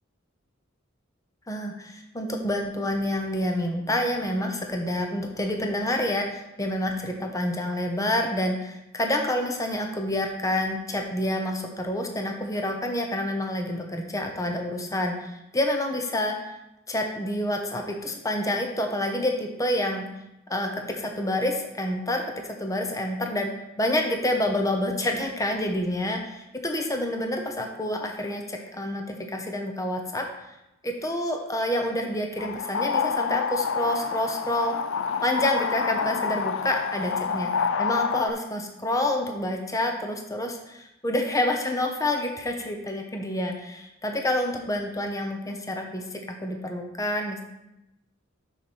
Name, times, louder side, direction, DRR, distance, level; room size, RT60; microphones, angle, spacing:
voice 1, 1.5-16.6 16.9-20.1 20.5-23.5 23.8-30.3 30.8-34.7 35.2-37.5 37.8-47.4, left 1 dB, 15° left, 3 dB, 0.9 m, -28 dB
sound 1, 32.4-38.3, left 6 dB, 65° left, 0.5 m, -27 dB
7.0 x 5.6 x 6.3 m, 0.90 s
head